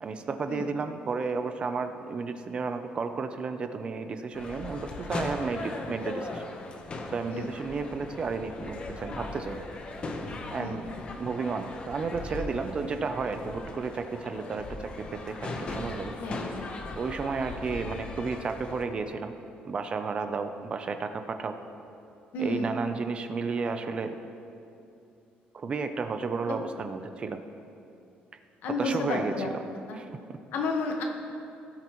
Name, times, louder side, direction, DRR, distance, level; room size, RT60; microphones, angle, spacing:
voice 1, 0.0-6.4 7.1-9.7 10.5-10.9 11.2-16.1 17.0-19.3 19.6-21.6 22.4-24.1 25.5-27.4 28.6-29.5 29.9-30.4, right 4 dB, 30° right, 8 dB, 0.5 m, -32 dB
sound 1, 4.3-18.8, left 2 dB, 30° left, 0.9 m, -39 dB
voice 2, 16.2-16.8 22.3-22.8 26.5-26.6 28.6-29.5 29.9-30.0 30.5-31.0, left 2 dB, 75° left, 2 dB, 1.3 m, -31 dB
17.5 x 8.0 x 3.0 m, 2.7 s
cardioid pair, 165°, 4 cm